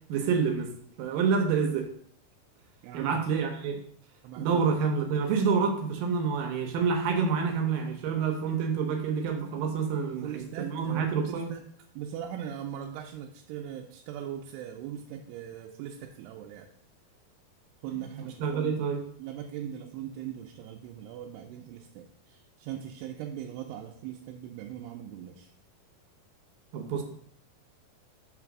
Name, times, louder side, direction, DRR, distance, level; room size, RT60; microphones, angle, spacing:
voice 1, 0.1-0.7 1.0-1.9 2.9-3.8 4.4-11.5 17.9-19.1 26.7-27.0, right 5 dB, 75° right, 4 dB, 2.2 m, -28 dB
voice 2, 2.8-3.2 4.2-4.6 10.2-11.6 12.0-16.7 17.8-18.8 19.2-22.0 22.6-25.5, right 10 dB, 90° right, 2 dB, 2.6 m, -40 dB
6.1 x 3.3 x 5.9 m, 0.66 s
omnidirectional pair, 4.6 m